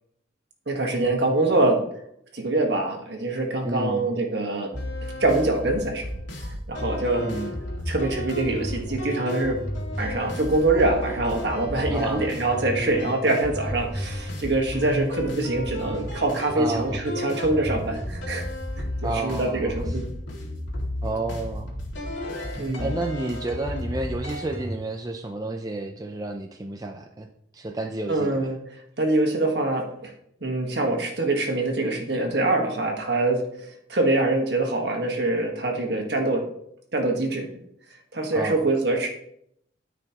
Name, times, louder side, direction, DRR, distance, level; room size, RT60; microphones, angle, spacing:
voice 1, 0.7-1.8 2.3-4.7 5.2-6.1 6.4-7.3 7.9-9.6 10.0-18.5 18.8-18.9 19.2-20.1 22.6-22.9 28.1-28.6 29.0-30.1 30.4-36.5 36.9-37.4 38.1-39.1, right 2 dB, 60° right, 3 dB, 1.5 m, -24 dB
voice 2, 3.6-4.1 7.2-7.5 11.9-12.4 16.6-17.0 19.0-19.8 21.0-21.8 22.8-27.3 27.5-28.5 38.3-38.6, right 2 dB, 20° right, 3 dB, 0.5 m, -31 dB
sound 1, 4.7-24.6, left 1 dB, 85° left, 2.1 m, -32 dB
13.0 x 5.1 x 3.0 m, 0.72 s
head